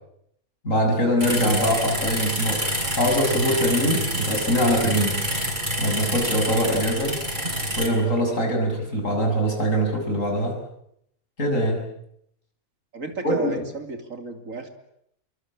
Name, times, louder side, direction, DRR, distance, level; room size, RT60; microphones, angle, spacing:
voice 1, 0.6-2.6 3.0-5.2 5.8-7.1 7.7-10.6 11.4-11.8 13.2-13.6, equal, 60° left, 2 dB, 7.6 m, -23 dB
sound 1, 1.2-7.9, equal, 30° right, 6.9 m, -27 dB
voice 2, 12.9-14.7, right 4 dB, 65° right, 6 dB, 3.4 m, -34 dB
28.0 x 23.5 x 8.8 m, 0.76 s
omnidirectional pair, 1.5 m